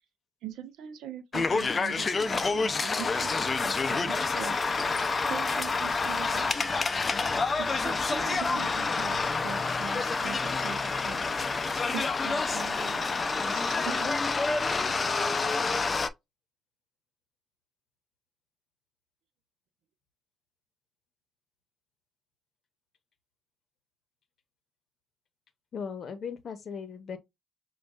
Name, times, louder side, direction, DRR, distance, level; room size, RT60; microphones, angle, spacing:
voice 1, 0.4-4.6 5.3-6.7 7.6-11.2 11.7-14.2, right 9 dB, 85° right, 0.7 m, -42 dB
sound 1, 1.3-16.1, left 4 dB, 35° left, 0.4 m, -28 dB
voice 2, 25.7-27.2, left 6 dB, 55° left, 0.8 m, -37 dB
6.1 x 2.3 x 2.4 m
cardioid pair, 90°, 0 cm